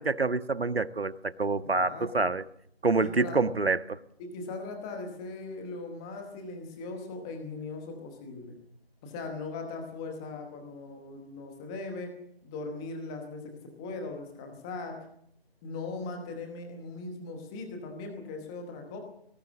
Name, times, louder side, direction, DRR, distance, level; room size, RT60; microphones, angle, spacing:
voice 1, 0.0-2.4 2.8-4.0, right 3 dB, 75° right, 12 dB, 1.5 m, -27 dB
voice 2, 1.6-2.3 3.0-3.4 4.2-8.5 9.0-12.2 12.4-15.0 15.6-19.0, left 3 dB, 5° left, 4 dB, 1.0 m, -39 dB
23.5 x 18.5 x 7.4 m, 0.71 s
figure-of-eight pair, 160°, 31 cm